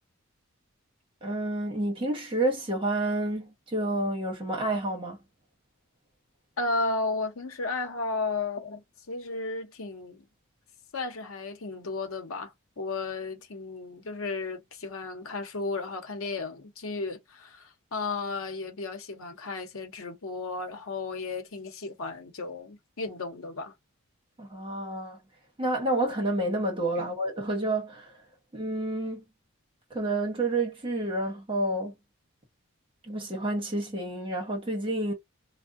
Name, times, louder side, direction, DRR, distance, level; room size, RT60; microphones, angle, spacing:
voice 1, 1.2-5.2 24.4-25.2 25.6-28.1 28.5-29.2 29.9-31.9 33.1-35.1, right 1 dB, 25° right, 1.2 m, -29 dB
voice 2, 6.6-10.3 10.9-23.7 27.0-27.1, left 3 dB, 80° left, 0.8 m, -34 dB
3.4 x 2.1 x 2.6 m
head